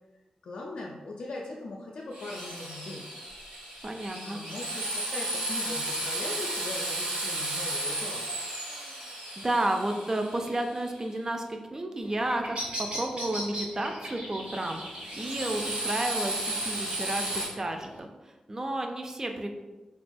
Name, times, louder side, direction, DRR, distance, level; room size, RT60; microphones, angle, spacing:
voice 1, 0.4-3.1 4.2-8.3, left 2 dB, 70° left, -3 dB, 0.3 m, -40 dB
Drill, 2.1-11.0 14.4-17.4, right 1 dB, 90° right, 1.1 m, -34 dB
voice 2, 3.8-4.4 9.4-19.5, right 1 dB, 25° right, 3 dB, 0.4 m, -32 dB
Bird vocalization bird call bird song, 12.0-18.0, equal, 70° right, 0.8 m, -40 dB
3.6 x 2.3 x 2.5 m, 1.2 s
wide cardioid pair, 90°, 2 cm